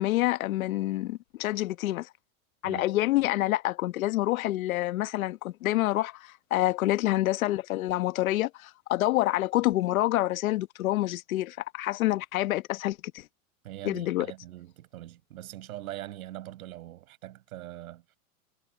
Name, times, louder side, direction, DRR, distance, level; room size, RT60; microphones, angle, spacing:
voice 1, 0.0-2.1 2.6-13.3 13.8-14.3, left 16 dB, 70° left, 1.2 m, -27 dB
voice 2, 13.6-18.2, right 14 dB, 75° right, 7.6 m, -42 dB
supercardioid pair, 150°, 43 cm